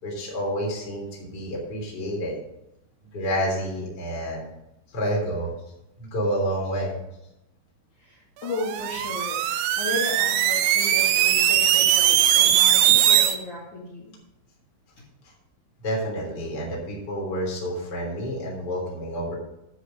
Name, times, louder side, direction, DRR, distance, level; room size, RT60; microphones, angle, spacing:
voice 1, 0.0-2.4 3.1-4.4 4.9-5.5 6.0-7.0 15.8-19.3, equal, 25° left, -2 dB, 3.1 m, -29 dB
voice 2, 8.0-14.1, left 2 dB, 45° left, -5 dB, 3.1 m, -34 dB
sound 1, 8.5-13.4, right 11 dB, 85° right, 2.4 m, -20 dB
11.5 x 7.5 x 5.2 m, 0.86 s
omnidirectional pair, 5.7 m